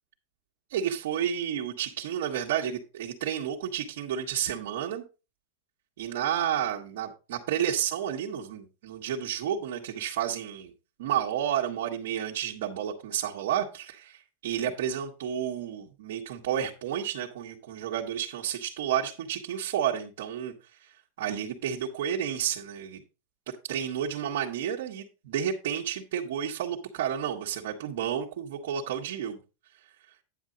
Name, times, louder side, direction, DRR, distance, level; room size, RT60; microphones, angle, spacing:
voice 1, 0.7-5.0 6.0-10.7 11.0-20.5 20.8-23.0 23.6-29.4, right 9 dB, 65° right, -3 dB, 1.4 m, -31 dB
9.6 x 7.2 x 3.9 m, 0.30 s
supercardioid pair, 150°, 0 cm